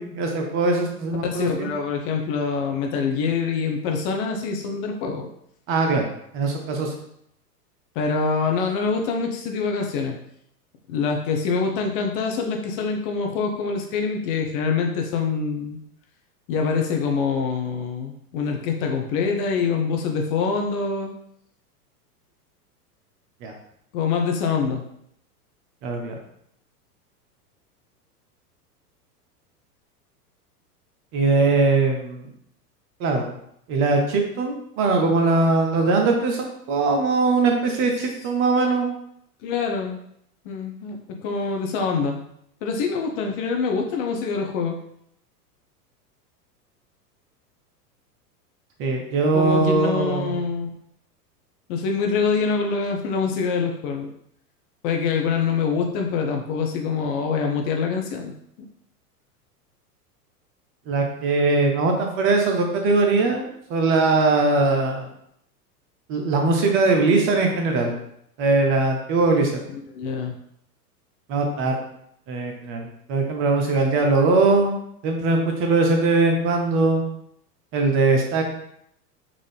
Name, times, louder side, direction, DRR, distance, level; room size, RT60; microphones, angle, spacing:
voice 1, 0.0-1.7 5.7-6.9 23.4-23.5 25.8-26.1 31.1-32.3 33.0-33.3 33.7-38.9 48.8-50.3 60.9-63.4 63.7-65.1 66.1-67.9 68.4-69.6 71.3-71.8 72.3-72.8 73.1-77.0 77.7-78.4, right 3 dB, 30° right, 3 dB, 0.5 m, -21 dB
voice 2, 1.3-5.3 8.0-10.2 10.9-15.8 16.5-21.1 23.9-24.8 38.0-38.1 39.4-40.0 40.4-42.2 42.6-44.8 49.3-50.7 51.7-54.1 54.8-58.3 69.7-70.4, left 5 dB, 35° left, 2 dB, 0.5 m, -25 dB
3.7 x 2.5 x 3.3 m, 0.72 s
hypercardioid pair, 95°, 47 cm